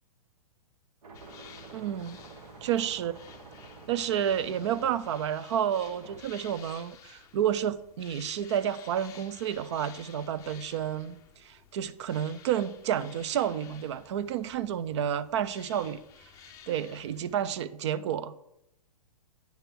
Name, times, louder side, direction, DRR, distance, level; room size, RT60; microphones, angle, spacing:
sound 1, 1.0-6.2, right 3 dB, 90° right, 1.4 m, -49 dB
sound 2, 1.1-17.7, left 8 dB, 15° left, 0.6 m, -53 dB
voice 1, 1.7-2.2 2.6-3.1 3.9-16.0 16.7-18.4, right 9 dB, 50° right, 0.4 m, -30 dB
9.1 x 3.4 x 5.8 m
hypercardioid pair, 155°, 19 cm